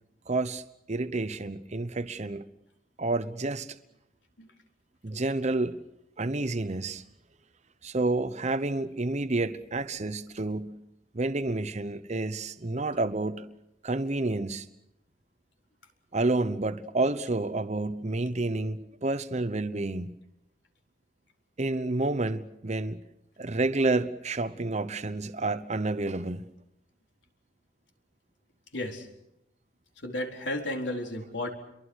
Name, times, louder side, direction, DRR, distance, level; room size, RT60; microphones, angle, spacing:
voice 1, 0.3-0.6 0.9-2.4 3.0-3.8 5.0-5.8 6.2-7.0 7.8-10.7 11.1-13.5 13.8-14.7 16.1-20.2 21.6-23.0 23.4-26.5, right 2 dB, 40° right, 0.9 m, -29 dB
voice 2, 28.7-29.1 30.0-31.5, left 1 dB, 80° left, 4.2 m, -33 dB
29.0 x 23.0 x 6.4 m
head